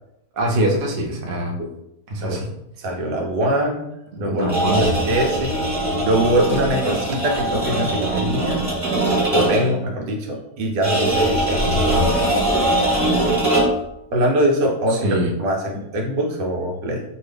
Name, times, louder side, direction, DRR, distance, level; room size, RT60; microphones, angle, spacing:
voice 1, 0.3-1.5 2.1-2.5 4.2-4.9 14.9-15.3, right 1 dB, 60° right, -1 dB, 0.5 m, -23 dB
voice 2, 2.8-3.9 4.2-4.5 4.8-5.6 6.0-8.6 9.3-12.2 14.1-15.0 15.4-17.0, right 1 dB, 90° right, 1 dB, 1.4 m, -23 dB
sound 1, 4.4-9.8 10.8-13.9, right 1 dB, 20° right, 1.2 m, -21 dB
2.7 x 2.7 x 3.3 m, 0.81 s
omnidirectional pair, 1.8 m